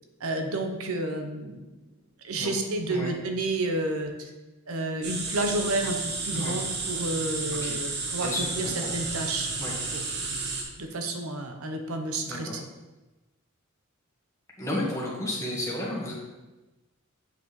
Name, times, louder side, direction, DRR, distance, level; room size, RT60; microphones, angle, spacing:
voice 1, 0.2-1.7 2.2-4.3 4.7-8.7 8.9-9.6 9.9-10.0 10.8-12.6, right 2 dB, 80° right, 4 dB, 0.8 m, -30 dB
sound 1, 5.0-10.6, right 3 dB, 50° right, 1.1 m, -32 dB
voice 2, 8.2-8.9 9.6-9.7 12.3-12.6 14.6-16.1, left 1 dB, 15° left, -5 dB, 1.5 m, -32 dB
7.7 x 5.5 x 3.1 m, 1.1 s
head